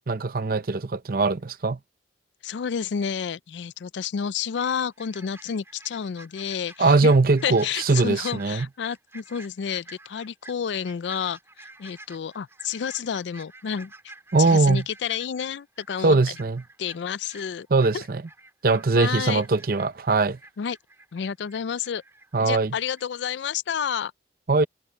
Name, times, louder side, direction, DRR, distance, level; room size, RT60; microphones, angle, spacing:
voice 1, 0.0-1.8 6.8-8.7 14.3-14.8 16.0-16.6 17.7-18.2 18.6-20.4 22.3-22.7 24.5-24.7, right 3 dB, 55° right, 0.7 m, -21 dB
voice 2, 2.4-7.1 7.4-13.9 14.4-16.2 16.8-17.7 17.9-18.0 18.9-19.4 20.6-20.8 21.1-22.0 22.4-24.1, left 7 dB, 80° left, 0.4 m, -30 dB
sound 1, 4.6-22.6 22.9-23.0, right 2 dB, 15° right, 3.2 m, -49 dB
head